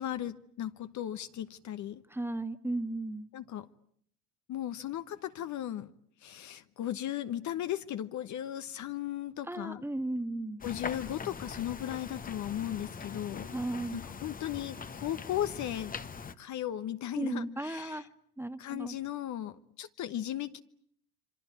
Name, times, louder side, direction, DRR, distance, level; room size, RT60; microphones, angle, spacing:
voice 1, 0.0-2.0 3.3-3.7 4.5-5.9 6.2-9.8 10.6-13.5 13.9-15.9 16.4-18.0 18.6-20.6, left 11 dB, 40° left, 10 dB, 1.1 m, -36 dB
voice 2, 2.1-3.3 9.5-10.6 13.5-14.0 17.1-18.1 18.4-19.0, right 2 dB, 5° right, 10 dB, 1.5 m, -35 dB
sound 1, 10.6-16.3, left 5 dB, 20° left, 1.2 m, -42 dB
26.5 x 24.5 x 8.5 m, 0.67 s
hypercardioid pair, 85°, 44 cm